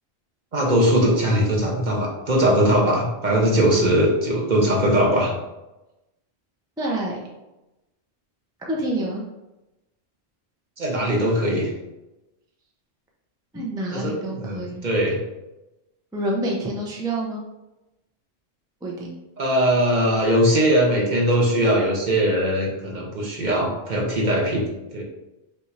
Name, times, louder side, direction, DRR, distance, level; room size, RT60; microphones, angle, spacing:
voice 1, 0.5-5.3 10.8-11.7 13.9-15.2 19.4-24.6 24.9-25.0, equal, 45° right, -2 dB, 0.9 m, -20 dB
voice 2, 6.8-7.2 8.6-9.2 13.5-14.9 16.1-17.4 18.8-19.2, right 1 dB, 5° right, -2 dB, 0.5 m, -27 dB
5.4 x 2.6 x 3.2 m, 0.99 s
omnidirectional pair, 1.2 m